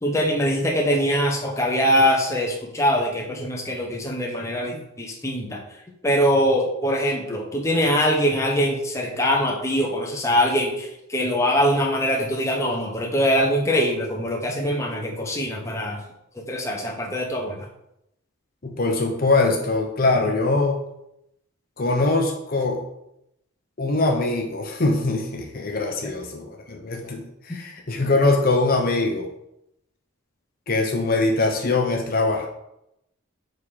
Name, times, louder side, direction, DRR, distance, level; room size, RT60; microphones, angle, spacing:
voice 1, 0.0-5.6 6.0-16.0 16.3-17.7, equal, 15° left, -1 dB, 0.8 m, -23 dB
voice 2, 18.6-20.8 21.8-22.8 23.8-29.3 30.7-32.5, left 2 dB, 45° left, 2 dB, 0.7 m, -22 dB
6.6 x 3.7 x 4.8 m, 0.82 s
head